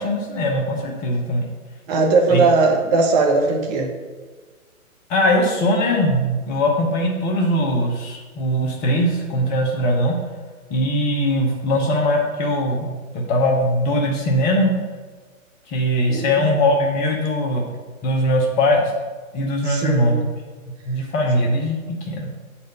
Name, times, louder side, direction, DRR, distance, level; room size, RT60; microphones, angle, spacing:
voice 1, 0.0-1.5 2.3-2.4 5.1-10.2 10.7-14.7 15.7-17.7 18.0-18.9 19.3-20.1 20.9-22.3, equal, 20° left, 0 dB, 1.0 m, -20 dB
voice 2, 1.9-3.9 16.1-16.5 19.6-20.3, right 3 dB, 30° right, 2 dB, 1.0 m, -19 dB
8.0 x 4.3 x 5.3 m, 1.4 s
hypercardioid pair, 130°, 42 cm